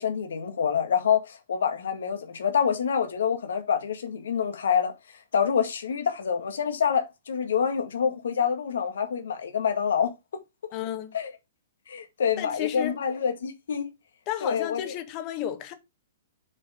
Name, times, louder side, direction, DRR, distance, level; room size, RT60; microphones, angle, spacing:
voice 1, 0.0-4.9 5.3-10.1 11.1-11.3 11.9-13.9 14.4-14.9, left 7 dB, 80° left, 2.0 m, -26 dB
voice 2, 10.7-11.2 12.4-13.0 14.2-15.7, left 11 dB, 35° left, 1.7 m, -32 dB
7.2 x 4.6 x 5.1 m
hypercardioid pair, 135°, 0 cm